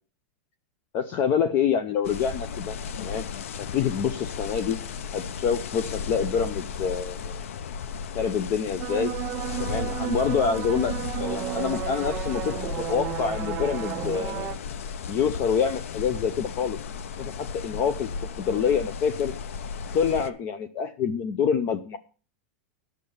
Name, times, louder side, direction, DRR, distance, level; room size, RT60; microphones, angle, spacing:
voice 1, 0.9-3.2 3.6-4.8 5.1-7.4 8.1-9.1 9.6-14.5 15.1-16.8 17.2-18.1 18.4-19.3 19.9-22.0, left 7 dB, 30° left, 14 dB, 0.5 m, -26 dB
sound 1, 2.0-20.3, left 6 dB, 85° left, 0.7 m, -35 dB
sound 2, 8.8-14.6, right 12 dB, 20° right, 0.6 m, -33 dB
10.0 x 6.5 x 6.9 m, 0.37 s
supercardioid pair, 175°, 7 cm